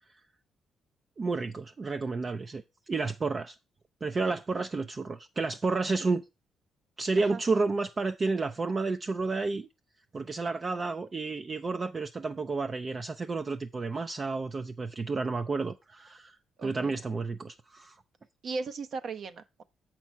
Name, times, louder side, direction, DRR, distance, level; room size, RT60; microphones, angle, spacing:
voice 1, 1.2-3.6 4.0-6.2 7.0-9.7 10.1-16.4 16.6-18.0, right 3 dB, 35° right, 0.5 m, -31 dB
voice 2, 16.6-17.0 18.4-19.6, right 4 dB, 55° right, 0.8 m, -37 dB
7.4 x 5.9 x 4.4 m
cardioid pair, 90°, 0 cm